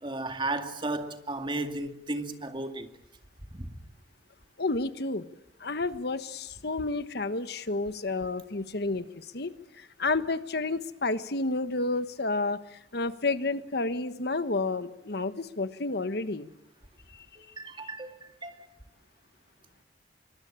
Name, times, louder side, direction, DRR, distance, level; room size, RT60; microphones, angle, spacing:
voice 1, 0.0-2.9 3.5-3.7 17.4-18.2 18.4-18.5, right 2 dB, 30° right, 2.1 m, -34 dB
voice 2, 4.6-5.2 5.6-16.5 17.8-17.9, left 3 dB, 65° left, 1.3 m, -31 dB
25.5 x 23.5 x 8.8 m
head